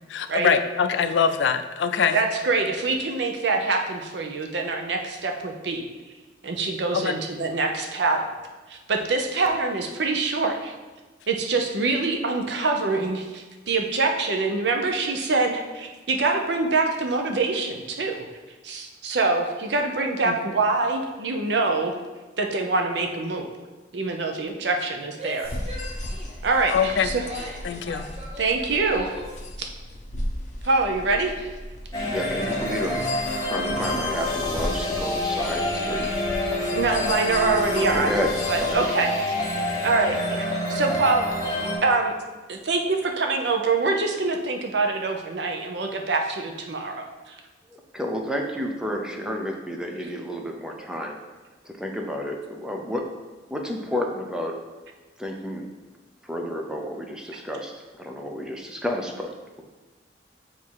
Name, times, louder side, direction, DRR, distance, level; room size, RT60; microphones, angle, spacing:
voice 1, 0.1-2.2 6.9-7.2 20.2-20.4 26.7-27.1 27.6-28.1, left 6 dB, 85° left, 9 dB, 0.4 m, -23 dB
voice 2, 2.1-5.9 6.4-8.2 8.7-10.7 11.3-18.2 18.6-22.0 22.4-23.5 23.9-25.5 26.4-27.2 28.4-29.2 29.6-29.7 30.6-31.5 36.7-38.2 38.5-39.1 39.8-42.1 42.5-46.9 47.3-47.4, right 3 dB, 70° right, 3 dB, 0.7 m, -25 dB
Female speech woman speaking / Yell, 25.1-29.4, left 1 dB, 35° right, 0.9 m, -40 dB
sound 1, 25.4-38.7, left 1 dB, 45° left, 0.8 m, -36 dB
sound 2, 31.9-41.8, left 1 dB, 20° left, 1.4 m, -27 dB
voice 3, 32.0-33.0 33.4-36.2 37.9-38.3 38.6-38.8 47.9-51.2 51.6-53.1 53.5-54.6 55.2-55.7 56.2-59.3, equal, 5° right, 1 dB, 0.6 m, -30 dB
7.4 x 2.8 x 4.7 m, 1.2 s
head